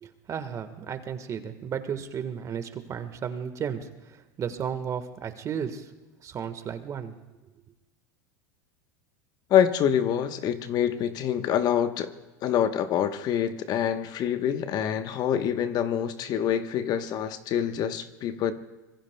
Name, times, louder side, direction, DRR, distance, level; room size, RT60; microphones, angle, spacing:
voice 1, 0.0-5.9 6.2-7.1, right 7 dB, 35° right, 1.4 m, -34 dB
voice 2, 9.5-12.1 12.4-18.5, left 9 dB, 45° left, 1.0 m, -26 dB
25.5 x 21.0 x 2.2 m
hypercardioid pair, 100°, 9 cm